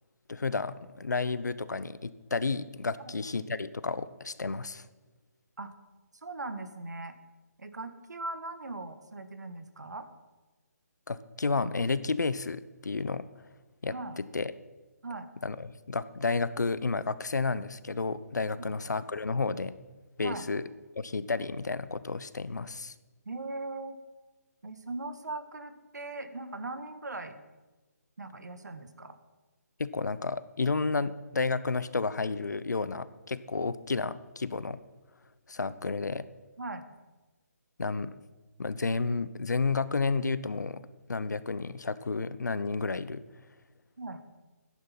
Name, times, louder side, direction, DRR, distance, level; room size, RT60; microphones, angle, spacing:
voice 1, 0.3-4.9 11.1-13.3 13.8-14.5 15.4-19.7 20.2-20.7 21.0-22.9 29.8-34.8 35.5-36.3 37.8-38.2 38.6-40.8 41.1-43.2, left 4 dB, 85° left, 16 dB, 0.8 m, -31 dB
voice 2, 6.2-7.1 7.6-10.1 13.9-14.2 15.0-15.3 18.6-18.7 20.2-20.4 23.2-24.0 24.6-27.4 28.2-29.1 36.6-36.8 44.0-44.2, right 2 dB, 85° right, 10 dB, 1.7 m, -39 dB
14.0 x 10.0 x 6.0 m, 1.2 s
hypercardioid pair, 155°, 9 cm